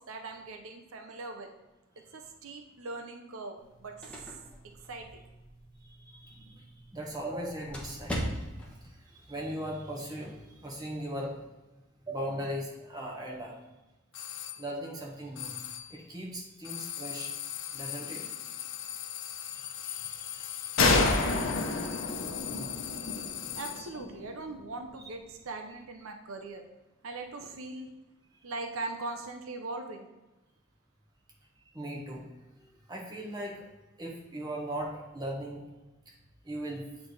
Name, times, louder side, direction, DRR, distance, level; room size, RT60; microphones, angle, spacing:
voice 1, 0.1-1.5 2.1-3.9 4.6-5.2 23.5-26.6 27.0-27.9 28.4-30.1, right 3 dB, 85° right, 5 dB, 0.7 m, -40 dB
sound 1, 3.6-8.8, equal, 5° left, 1.1 m, -41 dB
voice 2, 5.8-8.2 8.7-11.4 12.1-13.6 14.6-15.6 15.9-17.3 17.7-18.3 19.5-21.6 22.5-23.4 25.0-25.1 31.6-32.2 32.6-33.7 34.0-35.6 36.1-36.2 36.4-36.8, right 1 dB, 20° right, -3 dB, 1.3 m, -39 dB
sound 2, 14.1-14.6 15.4-16.0 16.6-24.0, left 11 dB, 60° left, 0.4 m, -39 dB
sound 3, 20.8-24.3, left 3 dB, 75° left, 0.9 m, -28 dB
8.8 x 3.4 x 4.0 m, 1.1 s
head